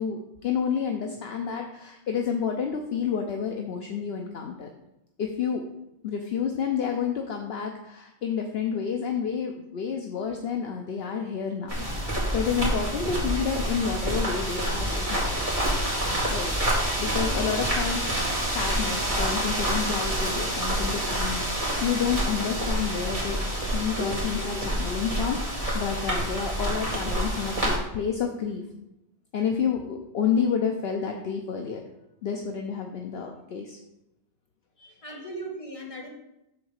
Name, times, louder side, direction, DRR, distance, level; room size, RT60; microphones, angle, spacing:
voice 1, 0.0-4.7 5.2-5.6 6.0-11.8 12.3-15.3 16.3-18.0 18.4-28.6 29.3-31.8 32.2-33.8 34.8-35.2, left 7 dB, 65° left, 3 dB, 0.9 m, -29 dB
sound 1, 11.7-27.8, right 1 dB, 30° right, 2.1 m, -27 dB
voice 2, 16.9-17.6 35.0-36.1, right 1 dB, 30° left, -2 dB, 1.7 m, -38 dB
7.0 x 3.9 x 6.5 m, 0.89 s
omnidirectional pair, 1.2 m